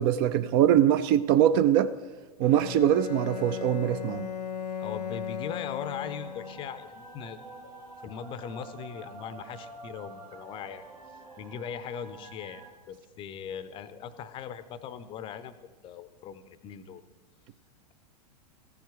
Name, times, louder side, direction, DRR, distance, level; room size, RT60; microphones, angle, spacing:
voice 1, 0.0-1.9 2.4-4.3, right 10 dB, 35° right, 13 dB, 0.4 m, -23 dB
Bowed string instrument, 2.4-6.9, left 7 dB, 75° left, 0.5 m, -37 dB
voice 2, 4.8-7.4 8.0-10.8 11.4-15.6 15.8-17.0, left 8 dB, 25° left, 13 dB, 0.6 m, -40 dB
sound 1, 5.9-12.7, right 3 dB, 80° right, 1.6 m, -48 dB
15.0 x 7.2 x 4.8 m, 1.2 s
figure-of-eight pair, 95°, 21 cm